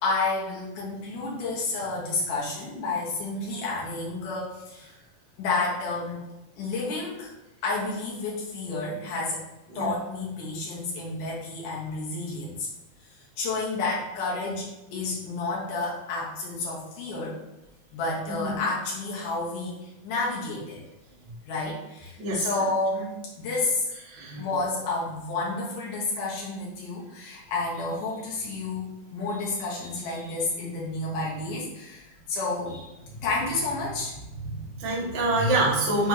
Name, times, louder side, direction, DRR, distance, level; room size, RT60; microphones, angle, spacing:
voice 1, 0.0-4.9 5.4-6.2 6.6-7.3 7.6-9.4 9.8-12.7 13.4-17.4 17.9-20.8 21.5-23.8 24.4-34.9 35.3-35.7, left 3 dB, 70° left, -5 dB, 2.1 m, -30 dB
voice 2, 18.3-18.6 22.2-22.5 24.1-24.5 34.8-36.1, right 2 dB, 65° right, -7 dB, 1.1 m, -26 dB
6.9 x 4.3 x 3.1 m, 0.97 s
omnidirectional pair, 5.5 m